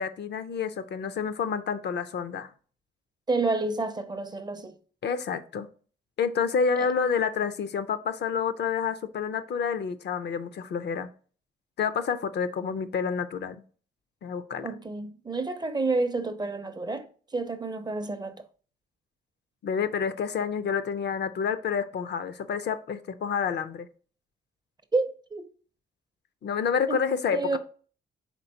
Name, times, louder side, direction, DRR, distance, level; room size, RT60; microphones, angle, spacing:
voice 1, 0.0-2.5 5.0-5.7 6.2-11.1 11.8-13.6 14.2-14.7 19.6-23.9 26.4-27.6, left 6 dB, 55° left, 0.5 m, -29 dB
voice 2, 3.3-4.7 6.8-6.9 14.6-17.1 17.3-18.4 24.9-25.5 26.9-27.0 27.3-27.6, right 3 dB, 20° right, 0.5 m, -29 dB
4.4 x 3.6 x 2.7 m
cardioid pair, 75°, 20 cm